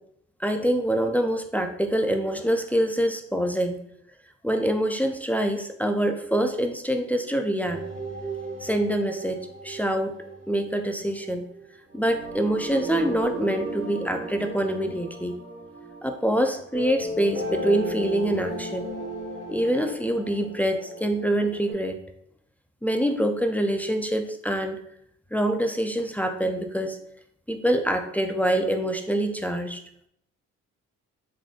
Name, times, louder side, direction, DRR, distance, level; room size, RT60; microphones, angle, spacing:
voice 1, 0.4-3.8 4.4-7.8 8.6-10.2 10.5-11.5 11.9-15.4 16.0-18.9 19.5-22.0 22.8-24.8 25.3-27.0 27.5-29.8, right 1 dB, 5° left, 4 dB, 0.3 m, -25 dB
sound 1, 7.6-21.7, right 1 dB, 40° right, 1.5 m, -36 dB
3.8 x 3.5 x 2.4 m, 0.72 s
cardioid pair, 90°, 30 cm